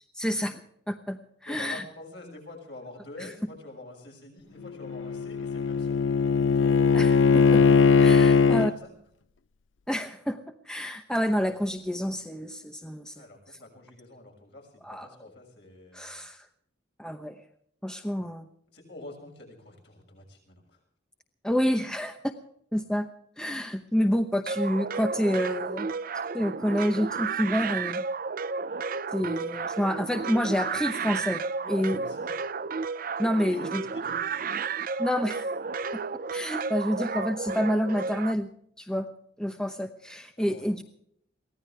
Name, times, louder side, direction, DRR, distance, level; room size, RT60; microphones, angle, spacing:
voice 1, 0.1-0.6 0.9-1.8 3.2-3.3 6.9-7.6 8.0-8.7 9.9-10.4 10.7-13.2 14.8-15.1 15.9-16.5 17.0-17.4 17.8-18.5 21.4-22.2 22.7-23.1 23.4-25.9 26.3-28.0 29.1-31.4 31.7-32.0 33.2-33.8 35.0-35.5 35.9-36.0 36.3-38.5 38.8-39.1 39.4-40.8, equal, 5° left, 6 dB, 0.9 m, -28 dB
voice 2, 1.4-6.0 6.3-7.0 8.2-8.9 13.1-16.2 18.7-20.8 31.6-32.3 33.5-34.5 40.4-40.6, left 2 dB, 60° left, 1 dB, 6.7 m, -46 dB
Bowed string instrument, 4.6-8.7, left 5 dB, 85° left, 0.6 m, -20 dB
sound 1, 24.5-38.3, right 5 dB, 45° right, 0.6 m, -32 dB
23.5 x 16.5 x 3.4 m, 0.68 s
head